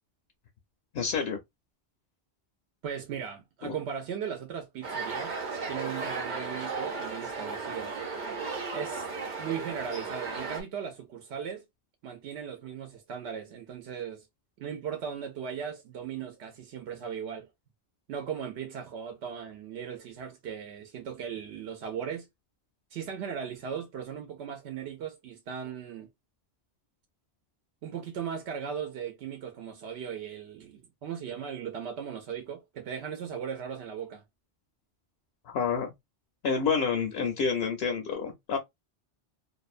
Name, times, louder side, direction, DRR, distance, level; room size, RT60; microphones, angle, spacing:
voice 1, 0.9-1.4 3.6-3.7 35.5-35.9 36.4-38.6, left 5 dB, 75° left, 0.8 m, -28 dB
voice 2, 2.8-5.4 5.7-8.0 8.7-9.1 9.4-11.6 12.0-14.3 14.6-17.5 18.1-22.3 22.9-26.1 27.8-34.2, right 7 dB, 80° right, 0.8 m, -37 dB
sound 1, 4.8-10.6, right 4 dB, 50° right, 0.8 m, -35 dB
2.6 x 2.1 x 2.4 m
omnidirectional pair, 1.1 m